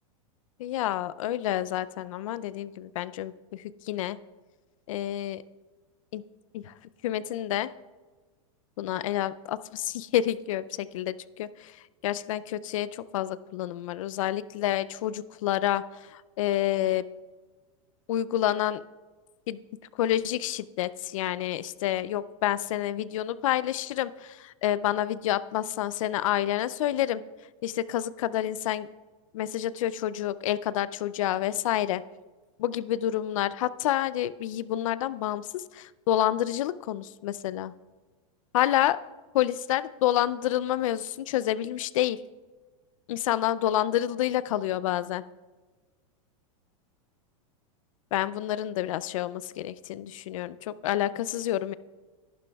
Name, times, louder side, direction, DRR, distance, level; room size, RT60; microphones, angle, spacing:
voice 1, 0.6-4.2 4.9-5.4 6.1-6.2 6.5-6.7 7.0-7.7 8.8-11.8 12.0-17.0 18.1-18.8 19.5-19.6 20.0-27.2 27.6-28.9 29.3-32.0 32.6-37.7 38.5-39.0 39.3-42.2 43.1-45.2 48.1-51.7, left 12 dB, 70° left, 17 dB, 0.4 m, -28 dB
13.0 x 11.5 x 2.3 m, 1.3 s
supercardioid pair, 165°, 18 cm